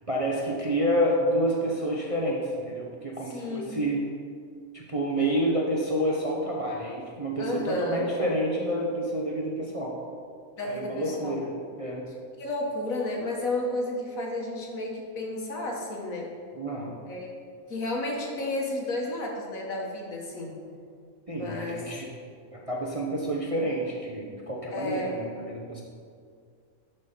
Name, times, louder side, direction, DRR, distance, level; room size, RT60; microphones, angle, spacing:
voice 1, 0.1-4.1 4.7-10.0 10.6-11.5 11.8-12.0 16.6-16.9 21.3-22.1 22.5-25.8, equal, 30° right, -2 dB, 0.7 m, -28 dB
voice 2, 3.3-3.7 7.4-8.0 10.6-11.4 12.4-16.3 17.1-17.3 17.7-20.5 21.3-21.8 24.7-25.2, left 2 dB, 70° left, -1 dB, 1.7 m, -32 dB
11.5 x 4.4 x 5.1 m, 2.2 s
omnidirectional pair, 1.5 m